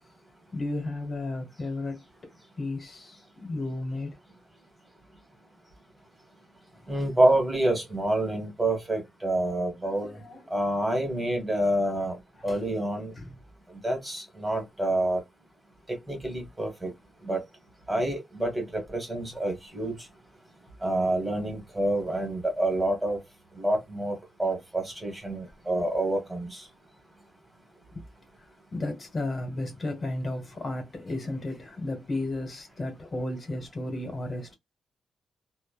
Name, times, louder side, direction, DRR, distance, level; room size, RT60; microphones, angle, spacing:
voice 1, 0.5-2.0 2.6-4.2 6.8-7.0 9.8-10.5 12.4-12.6 13.1-13.4 27.9-28.0 28.4-34.5, left 2 dB, 45° left, 1.2 m, -34 dB
voice 2, 6.9-10.1 10.5-12.2 12.4-13.1 13.8-15.2 16.1-16.9 17.2-17.4 17.9-19.9 20.8-23.2 23.6-26.6, right 1 dB, 15° right, 1.4 m, -27 dB
3.0 x 2.1 x 2.3 m
cardioid pair, 70°, 0 cm